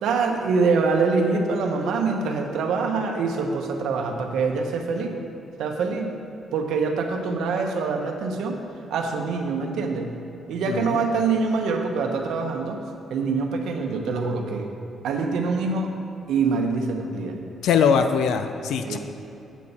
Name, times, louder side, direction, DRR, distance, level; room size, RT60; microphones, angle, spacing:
voice 1, 0.0-5.2 5.6-6.2 6.5-8.6 8.9-10.1 10.5-12.8 13.1-14.7 15.0-15.9 16.3-17.4 18.8-19.0, right 4 dB, 90° right, 2 dB, 1.0 m, -24 dB
voice 2, 10.7-11.0 17.6-19.0, left 6 dB, 85° left, 8 dB, 0.4 m, -21 dB
8.4 x 8.3 x 4.2 m, 2.9 s
cardioid pair, 175°, 0 cm